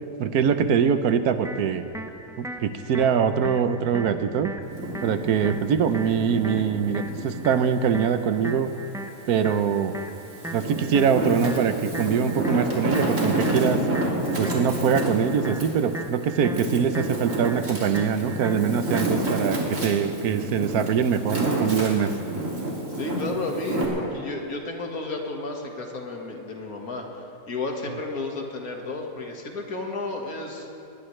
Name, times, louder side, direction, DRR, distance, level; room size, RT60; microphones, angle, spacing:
voice 1, 0.2-1.8 2.4-4.5 5.0-8.7 9.3-10.0 10.5-13.8 14.4-22.1, right 7 dB, 85° right, 10 dB, 1.3 m, -23 dB
sound 1, 1.4-19.4, right 1 dB, 5° right, 0.3 m, -39 dB
Wind, 4.6-7.5 8.0-9.3 9.9-23.8, right 1 dB, 55° right, 3.0 m, -29 dB
voice 2, 23.0-30.7, left 2 dB, 70° left, 1 dB, 2.2 m, -32 dB
20.5 x 19.5 x 3.3 m, 2.6 s
omnidirectional pair, 1.6 m